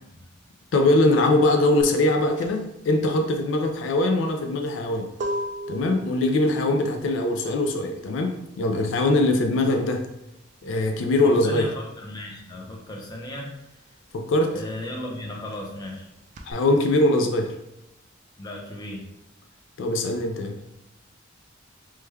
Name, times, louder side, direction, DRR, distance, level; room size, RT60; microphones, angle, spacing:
voice 1, 0.7-5.1 5.7-10.1 10.6-11.7 14.1-14.6 16.5-17.6 19.8-20.6, left 2 dB, 75° left, 4 dB, 0.4 m, -22 dB
sound 1, 1.8-12.0 12.3-16.5, equal, 35° right, 0.3 m, -38 dB
voice 2, 11.2-13.9 14.5-16.1 18.4-19.1, left 1 dB, 20° left, -2 dB, 0.5 m, -36 dB
3.1 x 2.2 x 3.3 m, 0.85 s
head